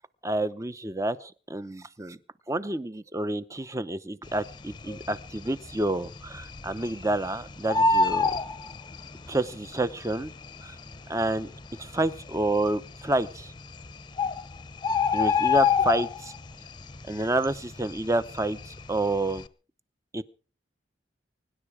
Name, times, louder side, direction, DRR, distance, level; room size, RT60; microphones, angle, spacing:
voice 1, 0.2-2.2 2.5-8.3 9.3-10.3 10.6-10.8 11.1-11.5 11.8-13.5 15.1-16.3 17.1-19.4 20.1-20.2, right 2 dB, 15° right, 14 dB, 0.7 m, -29 dB
Bird, 4.8-5.4 5.7-5.8 6.0-7.2 7.5-9.3 10.2-10.3 10.9-11.0 11.2-11.3 12.0-12.4 13.4-13.5 13.8-13.9 14.2-16.5 16.8-17.1 17.4-18.8 19.1-19.4, left 4 dB, 25° left, 0.8 m, -24 dB
24.5 x 11.0 x 4.9 m, 0.39 s
head